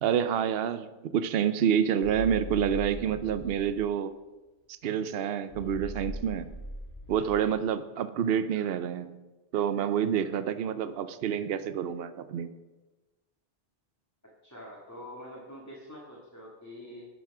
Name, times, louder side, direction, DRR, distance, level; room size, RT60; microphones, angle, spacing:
voice 1, 0.0-4.1 4.7-6.5 7.1-9.1 9.5-12.5, right 8 dB, 70° right, 12 dB, 0.8 m, -28 dB
sound 1, 2.0-3.8 5.5-7.5, left 1 dB, 85° left, 1.8 m, -40 dB
voice 2, 14.4-17.1, left 1 dB, 15° left, -4 dB, 1.8 m, -45 dB
11.5 x 6.1 x 6.0 m, 1.2 s
omnidirectional pair, 1.0 m